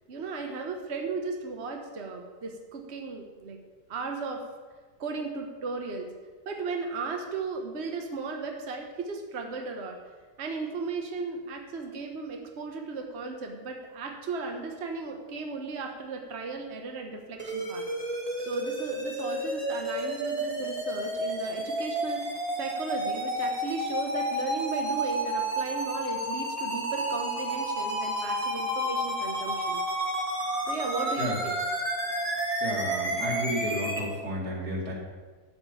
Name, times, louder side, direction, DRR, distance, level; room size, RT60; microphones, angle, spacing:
voice 1, 0.1-3.6 3.9-4.4 5.0-6.1 6.4-10.0 10.4-17.8 18.4-29.8 30.6-31.6, right 4 dB, 45° right, 3 dB, 1.4 m, -35 dB
sound 1, 17.4-34.0, right 1 dB, 20° right, 2.0 m, -31 dB
voice 2, 32.6-34.9, equal, 85° right, -2 dB, 3.1 m, -32 dB
12.5 x 5.3 x 8.3 m, 1.4 s
omnidirectional pair, 1.7 m